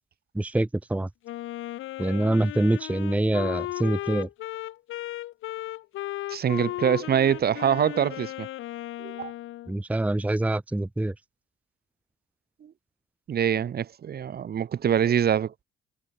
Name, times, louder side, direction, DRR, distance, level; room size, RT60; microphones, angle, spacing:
voice 1, 0.3-1.1 2.0-4.3 9.7-11.1, right 1 dB, 5° right, 0.7 m, -25 dB
Wind instrument woodwind instrument, 1.2-9.7, left 15 dB, 85° left, 2.7 m, -35 dB
voice 2, 6.3-8.5 9.0-9.3 12.6-12.7 13.3-15.5, right 9 dB, 50° right, 1.3 m, -24 dB
cardioid pair, 90°, 20 cm